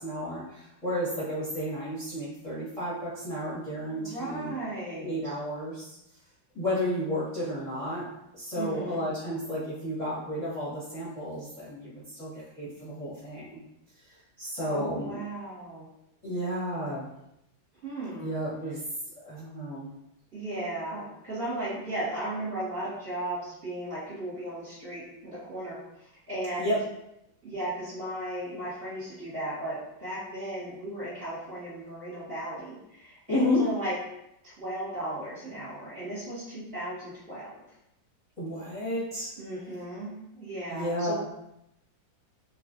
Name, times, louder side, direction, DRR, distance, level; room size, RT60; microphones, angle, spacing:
voice 1, 0.0-4.6 5.0-6.0 6.5-13.6 14.4-15.2 16.2-17.1 18.2-18.8 19.2-19.9 26.6-26.8 33.3-33.6 38.4-39.3 40.7-41.1, left 1 dB, 25° left, -11 dB, 0.9 m, -32 dB
voice 2, 4.0-5.1 8.5-9.0 14.6-15.9 17.8-18.3 20.3-25.8 26.3-26.7 27.4-34.0 34.4-37.5 39.4-41.1, right 1 dB, 35° right, -11 dB, 1.2 m, -35 dB
3.1 x 2.4 x 2.5 m, 0.83 s
omnidirectional pair, 2.1 m